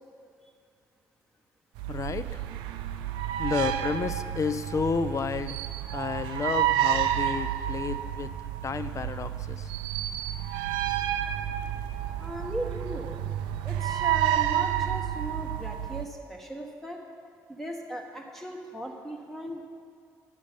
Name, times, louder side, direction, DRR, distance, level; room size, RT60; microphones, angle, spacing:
sound 1, 1.7-16.0, right 11 dB, 80° right, 0.4 m, -30 dB
voice 1, 1.9-2.4 3.4-5.6 5.9-8.3 8.6-9.7, left 5 dB, 40° left, 12 dB, 0.5 m, -31 dB
voice 2, 12.2-13.2 13.6-17.0 17.5-19.6, equal, 5° left, 0 dB, 1.2 m, -38 dB
8.9 x 6.4 x 5.2 m, 2.3 s
hypercardioid pair, 55°, 8 cm